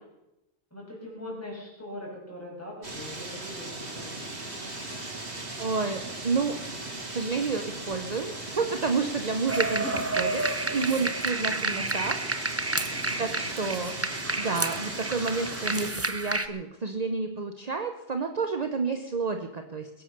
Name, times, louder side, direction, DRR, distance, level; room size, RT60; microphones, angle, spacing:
voice 1, 0.7-4.1 9.8-9.9 11.6-11.8 13.0-13.4, left 1 dB, 15° left, -3 dB, 6.1 m, -41 dB
sound 1, 2.8-15.9, right 2 dB, 90° right, 3.0 m, -37 dB
voice 2, 5.6-6.5 7.1-9.8 10.2-12.2 13.2-13.9 14.4-19.9, right 4 dB, 40° right, 6 dB, 1.0 m, -30 dB
sound 2, 9.5-16.5, right 2 dB, 15° right, 0.7 m, -30 dB
21.5 x 9.0 x 6.7 m, 0.95 s
omnidirectional pair, 1.1 m